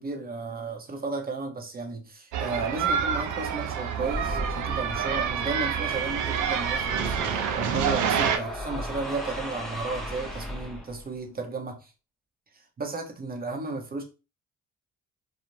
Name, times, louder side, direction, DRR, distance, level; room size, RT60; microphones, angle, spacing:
voice 1, 0.0-7.2 7.6-11.9 12.8-14.0, right 3 dB, 30° right, 4 dB, 0.7 m, -34 dB
sound 1, 2.3-8.4, right 8 dB, 80° right, 0.5 m, -27 dB
sound 2, 3.9-11.2, equal, ahead, 0.6 m, -36 dB
2.6 x 2.0 x 3.0 m, 0.31 s
cardioid pair, 90°, 30 cm